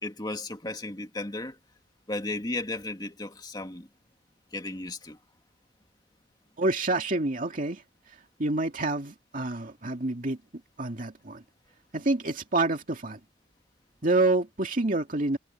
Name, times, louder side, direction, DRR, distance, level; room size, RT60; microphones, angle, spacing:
voice 1, 0.0-1.6 2.1-3.9 4.5-5.2, left 2 dB, 20° left, 2.1 m, -34 dB
voice 2, 6.6-7.8 8.1-10.4 10.8-11.4 11.9-13.2 14.0-15.4, right 2 dB, 45° right, 2.3 m, -27 dB
head